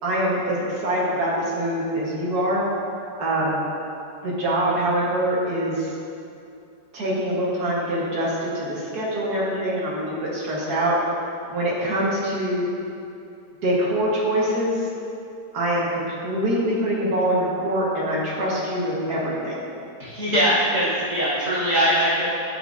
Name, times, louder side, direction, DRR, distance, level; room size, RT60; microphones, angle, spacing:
voice 1, 0.0-2.6 3.2-3.6 4.2-5.9 6.9-10.9 11.5-12.7 13.6-14.8 15.5-19.6, right 1 dB, 65° right, -6 dB, 1.8 m, -24 dB
voice 2, 20.0-22.3, equal, 50° right, -10 dB, 1.6 m, -21 dB
9.7 x 5.2 x 2.6 m, 2.6 s
omnidirectional pair, 1.9 m